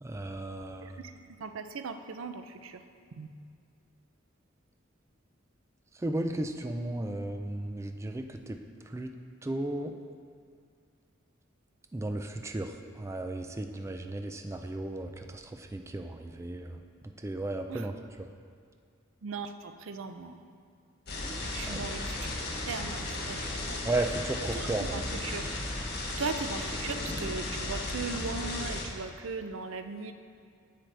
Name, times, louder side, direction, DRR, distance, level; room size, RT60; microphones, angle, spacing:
voice 1, 0.0-1.0 6.0-8.6 8.9-9.1 9.4-9.9 11.9-16.8 17.2-17.9 21.7-21.9 23.8-25.0, right 2 dB, 15° right, 5 dB, 0.3 m, -34 dB
voice 2, 0.8-2.8 3.2-3.3 17.7-17.9 19.2-20.4 21.5-22.3 22.7-23.8 24.5-25.5 26.2-30.1, right 4 dB, 90° right, 8 dB, 0.5 m, -38 dB
sound 1, 21.1-28.8, left 2 dB, 55° left, 1.3 m, -35 dB
10.0 x 7.7 x 3.3 m, 2.1 s
head